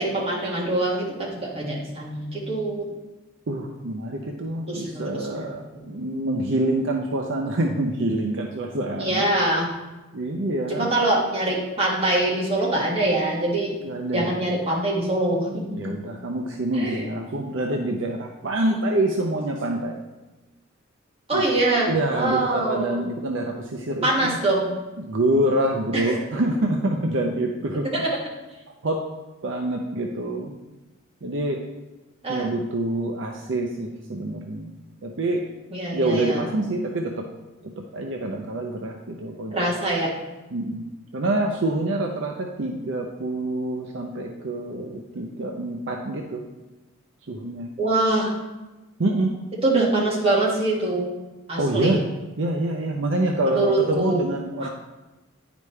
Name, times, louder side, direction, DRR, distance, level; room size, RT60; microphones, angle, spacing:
voice 1, 0.0-2.9 4.7-5.5 5.7-5.9 9.0-9.7 10.7-13.7 14.1-15.6 16.8-17.1 21.3-23.0 24.0-24.7 25.9-26.2 27.9-28.2 32.2-32.5 35.7-36.4 39.5-40.1 47.8-48.3 49.6-51.1 51.5-52.0 53.4-54.2 54.6-54.7, right 2 dB, 25° right, -5 dB, 1.8 m, -24 dB
voice 2, 3.5-9.3 10.1-10.9 13.8-14.3 15.8-20.0 21.3-21.4 21.9-24.4 25.0-27.9 28.8-29.0 29.4-30.5 31.2-31.6 32.3-34.7 35.0-35.4 35.9-37.2 37.6-39.7 40.5-40.9 41.1-46.4 47.3-47.7 49.0-49.3 51.6-52.0 52.4-54.7, right 1 dB, 60° right, 2 dB, 0.6 m, -26 dB
9.4 x 5.1 x 3.2 m, 1.1 s
head